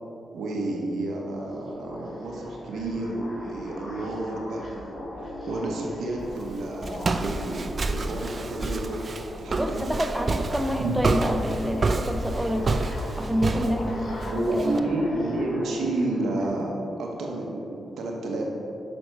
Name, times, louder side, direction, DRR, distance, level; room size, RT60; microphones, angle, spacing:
voice 1, 0.3-5.0 5.5-9.0 9.4-9.8 10.8-11.0 14.3-18.4, right 2 dB, 80° right, -1 dB, 1.1 m, -30 dB
sound 1, 1.2-16.5, left 1 dB, 55° left, 1.2 m, -41 dB
Walk footsteps, 6.2-14.8, right 3 dB, 50° right, 0.4 m, -29 dB
voice 2, 9.6-12.8 13.2-15.0, equal, 10° right, 4 dB, 0.7 m, -28 dB
6.3 x 6.1 x 4.5 m, 2.9 s
supercardioid pair, 50°, 0 cm